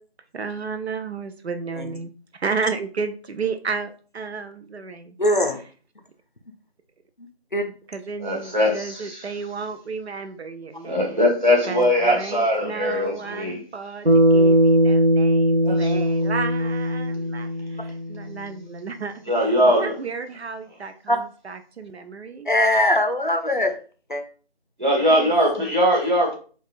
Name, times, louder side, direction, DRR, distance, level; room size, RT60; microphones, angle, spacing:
voice 1, 0.3-5.2 5.5-5.6 7.9-11.2 11.7-22.5 25.0-25.3 25.6-25.7, right 5 dB, 80° right, 0.5 m, -32 dB
voice 2, 5.2-5.6 7.5-7.7 21.1-21.2 22.5-23.7 24.1-24.2, left 1 dB, 50° left, 0.5 m, -21 dB
voice 3, 8.2-9.3 10.9-13.6 15.6-15.9 19.3-19.9 24.8-26.3, equal, 45° right, 1.3 m, -21 dB
Bass guitar, 14.1-18.5, right 1 dB, 65° right, 1.0 m, -19 dB
4.6 x 2.4 x 2.4 m
figure-of-eight pair, 175°, 32 cm